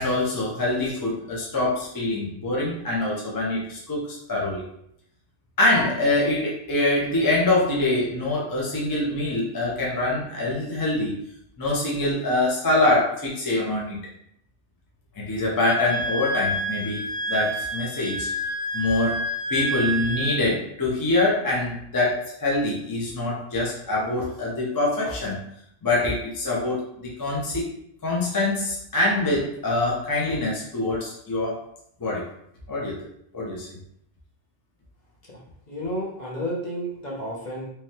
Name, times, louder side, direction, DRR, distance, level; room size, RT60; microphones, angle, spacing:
voice 1, 0.0-4.6 5.6-11.2 11.6-14.0 15.2-18.3 18.7-19.2 19.5-25.4 25.8-27.7 28.0-31.6 32.0-32.3 32.7-33.0 33.3-33.7, left 2 dB, 30° left, -4 dB, 0.4 m, -24 dB
Wind instrument woodwind instrument, 15.6-20.4, equal, 75° left, 1.9 m, -29 dB
voice 2, 35.7-37.7, equal, 45° left, -5 dB, 0.9 m, -31 dB
3.2 x 2.2 x 2.7 m, 0.74 s
omnidirectional pair, 1.1 m